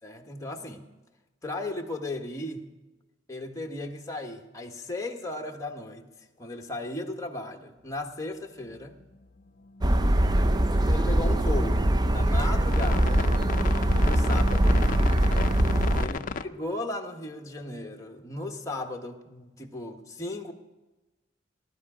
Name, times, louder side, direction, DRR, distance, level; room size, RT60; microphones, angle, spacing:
voice 1, 0.0-0.8 1.4-2.7 3.3-6.1 6.4-9.0 10.7-13.3 14.0-14.8 16.0-20.5, left 2 dB, 15° left, 3 dB, 1.3 m, -36 dB
sound 1, 8.6-9.0 9.4-16.4, left 4 dB, 45° left, 0.5 m, -36 dB
sound 2, 9.8-16.1, right 1 dB, 20° right, 0.5 m, -22 dB
18.0 x 12.0 x 5.0 m, 1.1 s
head